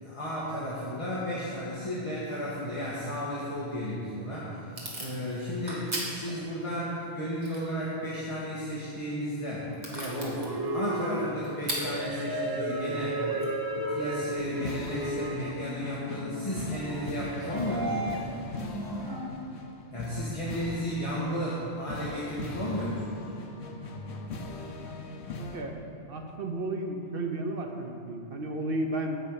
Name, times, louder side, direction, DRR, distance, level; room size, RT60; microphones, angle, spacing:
voice 1, 0.0-4.6 5.0-13.2 13.8-18.1 19.9-23.2, equal, 30° left, -8 dB, 1.7 m, -33 dB
Packing tape duct tape / Tearing, 3.8-14.6, right 1 dB, 40° right, 1.8 m, -42 dB
sound 1, 9.9-19.3, right 1 dB, 20° right, 0.8 m, -34 dB
sound 2, 14.4-25.6, left 2 dB, 75° left, 1.1 m, -40 dB
voice 2, 24.8-25.8 26.1-29.2, right 1 dB, 60° right, 3 dB, 1.1 m, -34 dB
9.3 x 5.6 x 8.2 m, 2.6 s
omnidirectional pair, 1.1 m